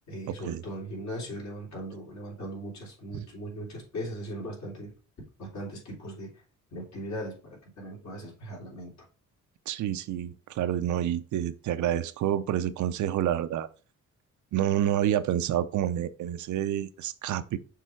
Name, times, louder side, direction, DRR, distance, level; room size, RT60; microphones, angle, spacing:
voice 1, 0.1-4.9 5.4-6.4 6.7-7.4 7.8-8.9, equal, 65° left, 3.4 m, -38 dB
voice 2, 9.7-13.7 14.5-17.6, right 11 dB, 70° right, 0.7 m, -28 dB
6.5 x 3.4 x 4.6 m
cardioid pair, 90°, 30 cm